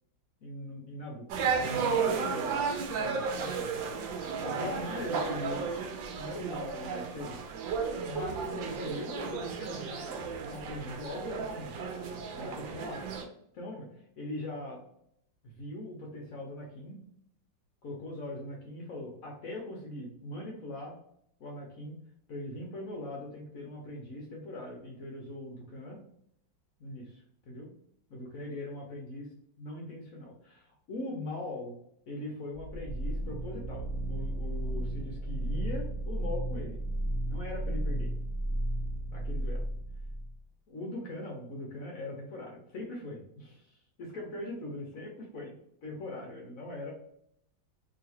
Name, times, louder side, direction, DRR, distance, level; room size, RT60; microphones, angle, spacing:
voice 1, 0.4-1.3 1.6-3.8 4.4-5.7 6.2-7.4 8.1-11.7 12.3-13.0 13.5-14.8 15.4-17.0 17.8-21.0 21.4-22.0 22.3-26.0 26.8-27.7 28.1-29.2 29.6-31.8 32.1-36.8 37.2-38.1 39.1-39.6 40.7-45.5 45.8-46.9, left 1 dB, 60° left, -1 dB, 1.0 m, -41 dB
sound 1, 1.3-13.2, right 5 dB, 90° right, 1.3 m, -33 dB
sound 2, 32.5-40.4, right 1 dB, 50° right, 0.9 m, -34 dB
3.1 x 2.9 x 2.7 m, 0.72 s
omnidirectional pair, 2.0 m